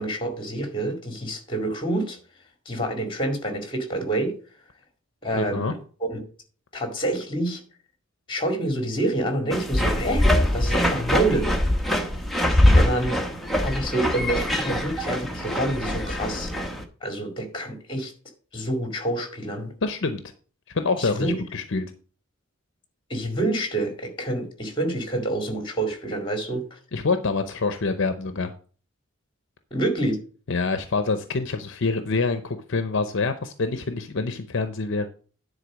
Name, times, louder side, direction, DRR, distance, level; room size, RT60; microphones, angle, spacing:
voice 1, 0.0-2.2 2.7-4.3 5.2-6.2 6.7-7.6 8.3-10.2 10.5-11.5 12.8-13.2 13.6-16.5 17.0-18.1 18.5-19.7 21.0-21.3 23.1-26.8 29.7-30.2, right 1 dB, 25° left, 5 dB, 2.1 m, -27 dB
voice 2, 5.4-5.7 19.8-20.2 20.7-21.9 26.9-28.5 30.5-35.1, left 4 dB, 60° left, 9 dB, 0.7 m, -26 dB
sound 1, 9.5-16.8, left 1 dB, ahead, 0.9 m, -23 dB
9.9 x 4.1 x 6.2 m, 0.41 s
head